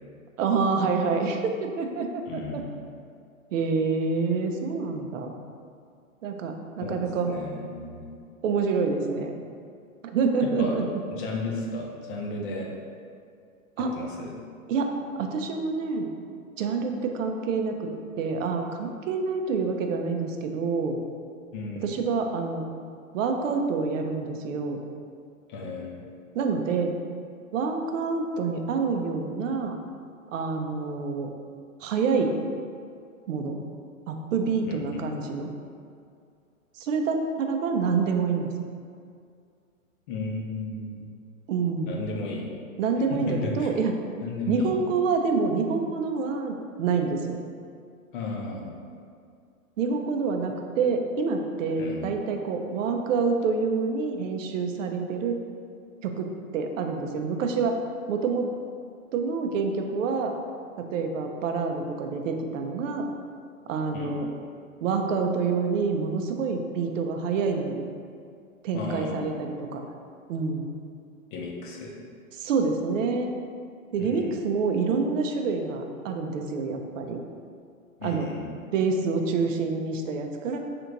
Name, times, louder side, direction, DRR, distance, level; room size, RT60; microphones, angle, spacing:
voice 1, 0.4-2.6 3.5-5.4 6.2-7.3 8.4-9.4 10.0-10.9 13.8-13.9 14.7-14.9 15.2-16.1 16.6-17.9 18.2-21.0 21.8-22.6 23.1-24.8 26.3-27.0 27.5-29.8 30.3-31.3 31.8-32.3 33.3-33.6 34.1-35.5 36.7-38.5 41.5-42.0 42.8-43.9 44.5-47.4 49.8-55.4 56.0-57.8 58.1-58.5 59.1-60.3 60.8-63.1 63.7-64.3 64.8-67.9 68.6-69.8 70.3-70.7 72.3-73.4 73.9-77.2 78.0-78.3 78.7-80.6, right 4 dB, 65° right, 4 dB, 0.6 m, -27 dB
voice 2, 2.3-2.7 6.8-8.1 10.4-10.8 11.1-12.7 13.8-14.4 21.5-22.0 25.5-26.0 34.6-35.1 40.1-41.1 41.9-42.4 43.1-43.7 44.2-44.7 48.1-48.7 51.8-52.0 63.9-64.2 68.7-69.3 71.3-71.9 74.0-74.4 78.0-78.5, left 3 dB, 40° left, -1 dB, 0.6 m, -34 dB
3.4 x 3.0 x 3.8 m, 2.3 s
hypercardioid pair, 140°, 41 cm